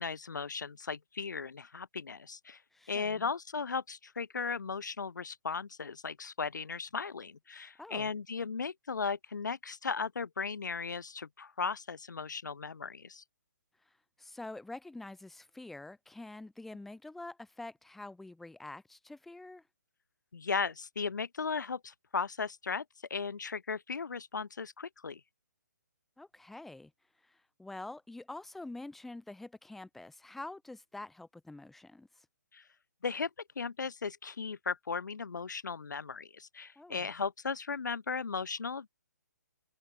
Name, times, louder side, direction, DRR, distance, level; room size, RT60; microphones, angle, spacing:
voice 1, 0.0-2.6 2.9-13.2 20.3-22.8 23.1-25.2 32.5-32.6 33.0-33.3 33.6-38.9, left 5 dB, 75° left, 3.5 m, -36 dB
voice 2, 2.7-3.3 7.8-8.1 14.2-19.6 26.2-26.9 27.3-32.1 36.8-37.1, left 2 dB, ahead, 6.5 m, -46 dB
hypercardioid pair, 170°, 10 cm